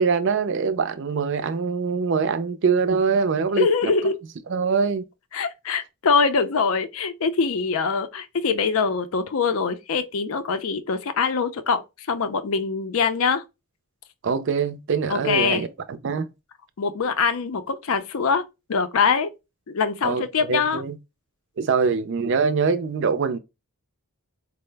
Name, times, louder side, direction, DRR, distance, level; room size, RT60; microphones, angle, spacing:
voice 1, 0.0-3.9 4.5-5.0 14.2-16.3 20.0-21.0 21.6-23.4, right 5 dB, 55° right, 0.4 m, -23 dB
voice 2, 3.6-4.2 5.3-13.4 15.1-15.6 16.8-18.4 18.7-19.3 19.7-20.8, left 5 dB, 70° left, 0.5 m, -23 dB
4.6 x 2.0 x 3.2 m
head